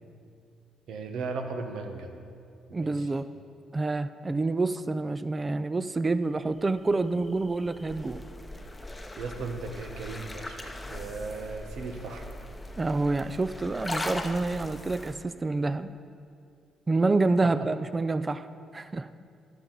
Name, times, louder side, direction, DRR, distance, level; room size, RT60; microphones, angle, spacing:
voice 1, 0.9-2.2 2.8-3.1 9.2-12.3 17.4-17.7, right 4 dB, 80° right, 5 dB, 1.1 m, -37 dB
voice 2, 2.7-3.3 3.7-8.2 12.8-15.9 16.9-18.5 18.7-19.1, right 3 dB, 25° right, 13 dB, 0.4 m, -27 dB
sound 1, 6.4-15.1, left 1 dB, 15° left, 0.9 m, -40 dB
11.5 x 11.0 x 4.0 m, 2.4 s
cardioid pair, 90°, 0 cm